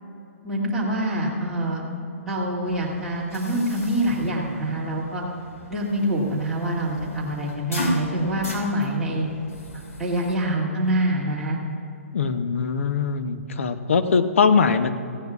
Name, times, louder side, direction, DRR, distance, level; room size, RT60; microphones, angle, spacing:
voice 1, 0.4-1.8 2.3-5.2 5.7-9.3 9.7-11.6, right 1 dB, 5° right, -8 dB, 2.3 m, -25 dB
sound 1, 2.6-10.4, left 1 dB, 85° left, 2.9 m, -36 dB
voice 2, 12.1-14.9, left 5 dB, 60° left, 9 dB, 0.8 m, -21 dB
18.5 x 15.0 x 2.4 m, 2.6 s
figure-of-eight pair, 125°, 8 cm